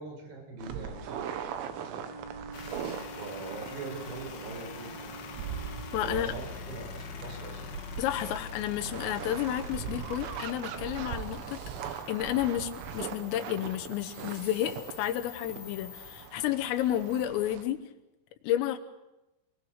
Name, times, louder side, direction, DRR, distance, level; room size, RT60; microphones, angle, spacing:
voice 1, 0.0-2.1 3.1-5.1 6.0-7.6, right 3 dB, 55° right, 3 dB, 7.2 m, -42 dB
sound 1, 0.6-17.6, right 8 dB, 80° right, 3.9 m, -41 dB
Wind instrument woodwind instrument, 2.0-6.5, right 2 dB, 15° right, 1.2 m, -47 dB
sound 2, 2.5-17.3, left 7 dB, 60° left, 3.4 m, -45 dB
voice 2, 5.9-6.3 8.0-17.8 18.4-18.8, left 12 dB, 85° left, 7 dB, 3.6 m, -31 dB
29.0 x 19.5 x 6.5 m, 0.98 s
omnidirectional pair, 5.9 m